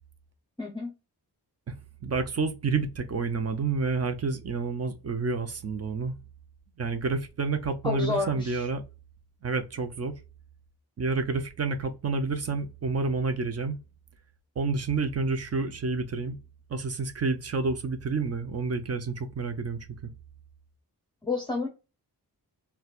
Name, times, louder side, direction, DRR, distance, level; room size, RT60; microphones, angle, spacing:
voice 1, 0.6-0.9 7.8-8.7 21.2-21.7, left 3 dB, 10° left, 0.6 m, -30 dB
voice 2, 2.0-6.1 6.8-8.8 9.4-10.2 11.0-13.7 14.6-16.4 16.7-20.1, right 4 dB, 40° right, 0.5 m, -29 dB
4.1 x 2.2 x 2.3 m
wide cardioid pair, 160°, 39 cm